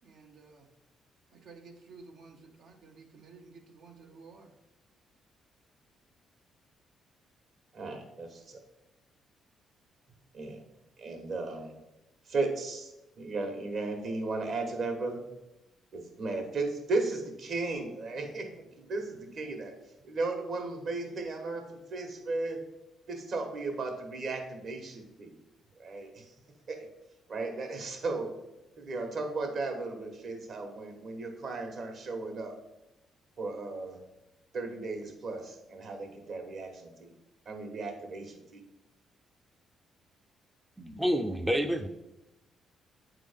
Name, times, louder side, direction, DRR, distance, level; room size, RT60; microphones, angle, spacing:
voice 1, 0.0-0.7 1.3-4.5, right 4 dB, 75° right, 2 dB, 1.0 m, -53 dB
voice 2, 7.7-8.6 10.3-10.6 11.0-11.7 12.3-15.2 15.9-19.7 20.0-22.6 23.1-25.3 25.8-26.3 26.7-26.9 27.3-28.3 28.8-32.6 33.4-34.0 34.5-37.1 37.5-38.6, right 3 dB, 60° right, 3 dB, 1.6 m, -35 dB
voice 3, 40.8-41.9, equal, 10° right, 6 dB, 0.5 m, -28 dB
8.8 x 3.7 x 5.1 m, 0.95 s
cardioid pair, 90°, 0 cm